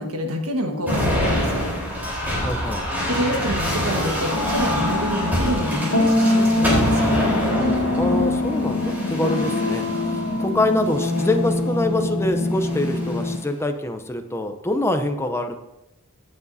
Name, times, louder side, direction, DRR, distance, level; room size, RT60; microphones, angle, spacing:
voice 1, 0.0-1.6 3.1-7.3, equal, 75° right, 3 dB, 1.5 m, -27 dB
sound 1, 0.9-10.2 10.9-11.4 12.5-13.2, equal, 10° right, 3.8 m, -26 dB
voice 2, 2.4-2.8 8.0-15.5, left 1 dB, 10° left, 7 dB, 0.6 m, -25 dB
sound 2, 4.3-13.4, left 2 dB, 70° left, 1.4 m, -23 dB
17.0 x 7.1 x 2.7 m, 0.94 s
head